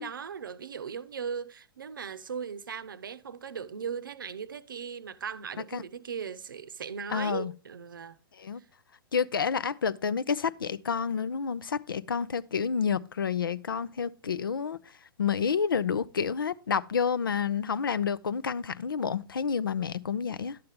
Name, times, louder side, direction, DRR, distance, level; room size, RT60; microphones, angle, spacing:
voice 1, 0.0-8.2 8.5-8.7, right 7 dB, 65° right, 0.7 m, -38 dB
voice 2, 7.1-7.5 8.4-8.6 9.1-14.8 15.2-20.6, left 6 dB, 70° left, 0.5 m, -29 dB
11.5 x 7.7 x 3.4 m
figure-of-eight pair, 110°, 12 cm